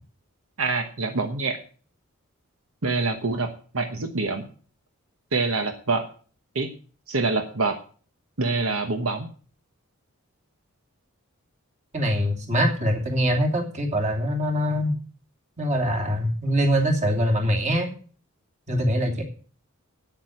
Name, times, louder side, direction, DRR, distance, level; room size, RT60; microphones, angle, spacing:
voice 1, 0.6-1.6 2.8-4.5 5.3-6.1 6.5-6.7 7.1-7.8 8.4-9.3, right 3 dB, 70° right, 6 dB, 1.2 m, -26 dB
voice 2, 11.9-14.9 15.6-17.9 18.7-19.2, equal, 35° right, 2 dB, 2.9 m, -23 dB
9.4 x 8.8 x 7.9 m, 0.41 s
head